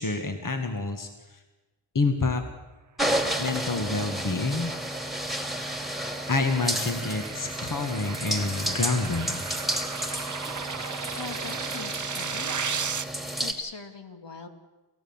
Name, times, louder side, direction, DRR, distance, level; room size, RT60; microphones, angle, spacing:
voice 1, 0.0-1.4 1.9-2.4 3.4-4.7 6.0-9.4, left 3 dB, 40° left, 5 dB, 2.0 m, -28 dB
sound 1, 3.0-13.5, right 1 dB, ahead, 2.8 m, -32 dB
sound 2, 4.2-13.0, right 6 dB, 40° right, 0.9 m, -36 dB
voice 2, 11.1-12.7 13.4-14.5, left 4 dB, 60° left, 5 dB, 2.6 m, -41 dB
28.5 x 15.0 x 7.3 m, 1.2 s
wide cardioid pair, 65°, 48 cm